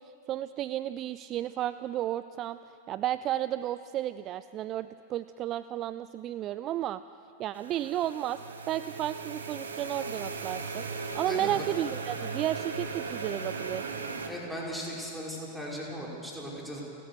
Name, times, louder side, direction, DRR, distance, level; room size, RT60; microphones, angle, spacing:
voice 1, 0.3-2.6 2.9-7.0 7.4-8.4 8.7-10.8 11.1-13.9, right 12 dB, 35° right, 15 dB, 0.4 m, -32 dB
sound 1, 7.5-14.3, right 4 dB, 70° right, 1.8 m, -37 dB
voice 2, 11.2-11.6 14.3-16.8, equal, 5° right, -4 dB, 5.1 m, -37 dB
30.0 x 13.0 x 6.9 m, 2.6 s
figure-of-eight pair, 90°, 0 cm